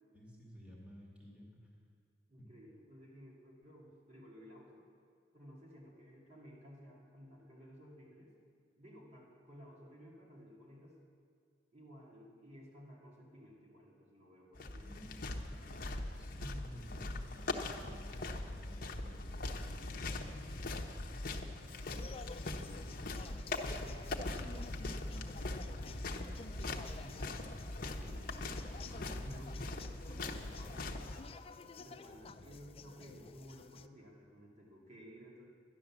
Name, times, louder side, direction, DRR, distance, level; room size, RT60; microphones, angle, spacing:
voice 1, 0.1-1.7 2.4-2.5 14.8-15.4 16.2-19.7 24.0-27.5 32.2-32.6, equal, 5° right, -3 dB, 2.4 m, -55 dB
voice 2, 2.3-4.9 5.3-8.3 8.8-11.0 11.7-15.2 28.0-29.6 30.1-31.1 31.8-35.5, equal, 40° right, -4 dB, 2.4 m, -55 dB
sound 1, 14.5-31.2, left 2 dB, 50° left, 1.0 m, -41 dB
sound 2, 21.7-33.9, left 4 dB, 35° left, 0.4 m, -52 dB
12.5 x 10.5 x 7.2 m, 2.3 s
head